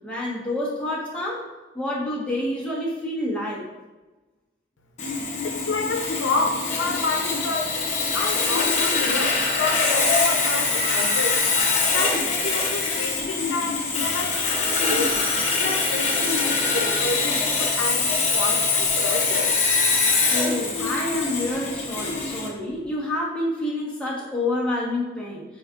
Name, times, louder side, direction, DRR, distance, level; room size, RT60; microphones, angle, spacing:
voice 1, 0.0-1.4 1.7-3.7 20.3-25.4, left 1 dB, 5° left, -6 dB, 1.4 m, -28 dB
Sawing, 5.0-22.5, left 4 dB, 35° left, 1.0 m, -23 dB
voice 2, 5.4-11.4 11.8-15.1 15.6-19.6, left 3 dB, 80° left, 3 dB, 0.7 m, -29 dB
8.7 x 4.3 x 2.5 m, 1.2 s
head